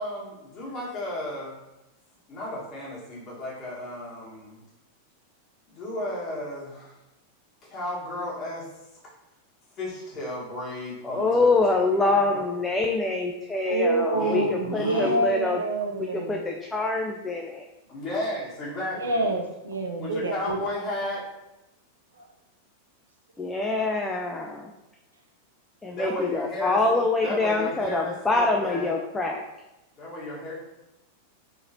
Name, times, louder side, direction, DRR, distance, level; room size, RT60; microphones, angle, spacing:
voice 1, 0.0-1.6 2.3-4.6 5.7-6.9 7.7-8.7 9.7-12.4 14.1-15.2 17.9-19.1 20.0-21.2 25.9-28.9 30.0-30.5, left 1 dB, 30° left, -6 dB, 1.4 m, -34 dB
voice 2, 11.0-14.4 14.7-15.6 16.3-17.6 23.4-24.7 25.8-29.4, left 2 dB, 10° left, 1 dB, 0.3 m, -25 dB
voice 3, 13.6-16.4 18.9-20.7 22.1-22.3, right 2 dB, 70° right, 2 dB, 0.5 m, -27 dB
3.7 x 2.9 x 2.7 m, 0.94 s
figure-of-eight pair, 90°, 0 cm